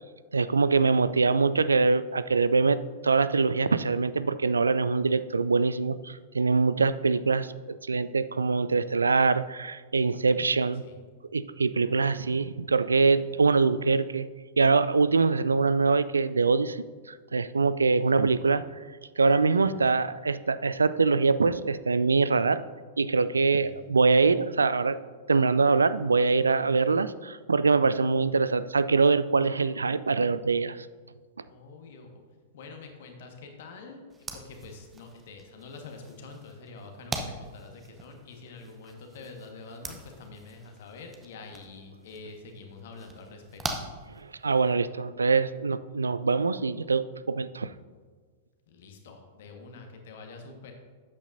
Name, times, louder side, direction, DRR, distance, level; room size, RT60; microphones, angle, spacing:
voice 1, 0.3-10.8 11.3-14.3 14.6-16.8 17.1-18.6 19.2-22.6 23.0-25.0 25.3-30.9 44.2-47.7, right 4 dB, 75° right, 15 dB, 0.3 m, -24 dB
voice 2, 19.5-19.9 23.3-23.9 31.5-32.2 32.5-43.8 48.7-50.7, left 3 dB, 55° left, 3 dB, 1.6 m, -46 dB
sound 1, 34.1-44.7, right 3 dB, 15° right, 0.9 m, -42 dB
12.0 x 8.6 x 2.7 m, 1.5 s
figure-of-eight pair, 100°, 0 cm